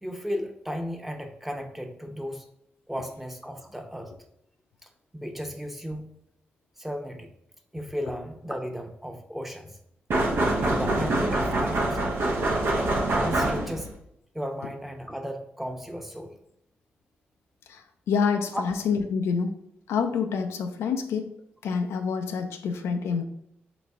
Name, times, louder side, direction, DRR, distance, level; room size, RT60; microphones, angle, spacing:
voice 1, 0.0-2.5 2.9-4.1 5.1-6.1 6.8-7.3 7.7-9.8 10.6-12.0 13.2-13.9 14.3-16.3 18.5-18.6, equal, 5° right, 4 dB, 0.8 m, -35 dB
sound 1, 10.1-14.0, right 2 dB, 70° right, 0.8 m, -25 dB
voice 2, 17.7-19.5 19.9-21.3 21.6-23.2, left 6 dB, 85° left, 6 dB, 0.4 m, -27 dB
4.0 x 3.2 x 3.5 m, 0.75 s
supercardioid pair, 50°, 4 cm